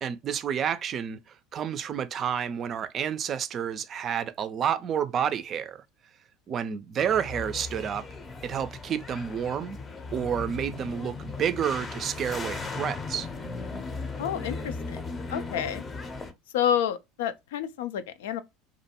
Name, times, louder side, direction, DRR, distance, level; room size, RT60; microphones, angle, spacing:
voice 1, 0.0-1.2 1.5-5.8 6.5-8.1 8.4-9.8 10.1-13.3, right 8 dB, 40° right, 0.4 m, -30 dB
sound 1, 7.0-16.3, left 3 dB, 30° left, 0.6 m, -37 dB
voice 2, 14.2-15.0 15.3-15.8 16.5-18.4, left 9 dB, 75° left, 0.4 m, -29 dB
2.5 x 2.2 x 2.8 m
hypercardioid pair, 80°, 0 cm